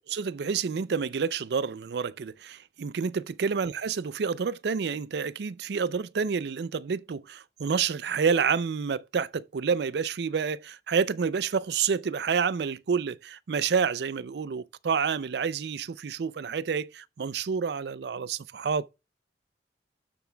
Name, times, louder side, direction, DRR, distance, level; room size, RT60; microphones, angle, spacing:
voice 1, 0.1-18.9, right 6 dB, 65° right, 0.4 m, -29 dB
12.0 x 7.0 x 2.2 m
head